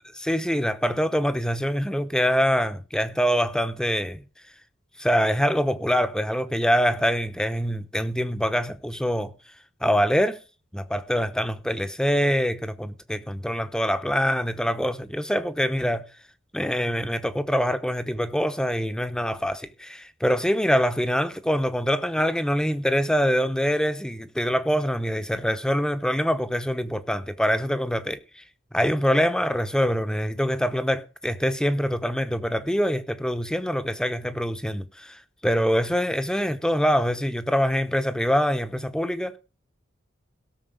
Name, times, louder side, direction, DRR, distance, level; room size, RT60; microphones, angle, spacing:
voice 1, 0.1-4.2 5.0-9.3 9.8-10.4 10.7-16.0 16.5-28.4 28.7-39.4, equal, 5° left, 0.8 m, -24 dB
17.5 x 6.8 x 5.3 m
head